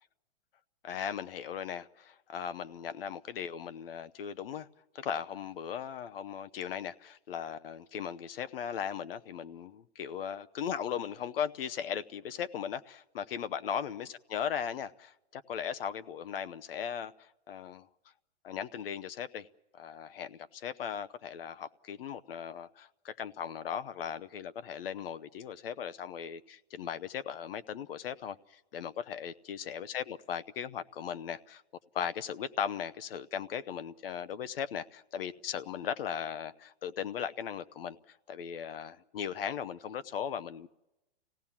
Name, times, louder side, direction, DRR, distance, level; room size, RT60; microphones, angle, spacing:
voice 1, 0.8-4.7 4.9-17.9 18.4-19.5 19.7-31.6 31.9-40.7, left 8 dB, 65° left, 0.9 m, -38 dB
25.5 x 17.5 x 7.2 m
hypercardioid pair, 175°, 31 cm